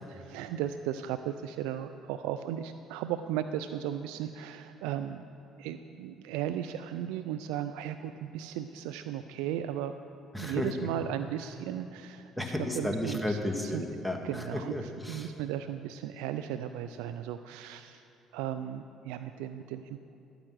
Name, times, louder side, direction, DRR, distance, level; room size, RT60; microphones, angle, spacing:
voice 1, 0.1-5.2 5.6-9.9 10.4-12.3 12.8-13.4 13.7-13.8 14.2-18.0 18.3-20.2, right 10 dB, 80° right, 10 dB, 0.3 m, -36 dB
voice 2, 10.3-10.9 12.4-15.3, left 1 dB, ahead, 3 dB, 1.7 m, -33 dB
12.0 x 8.9 x 6.2 m, 2.8 s
hypercardioid pair, 65°, 0 cm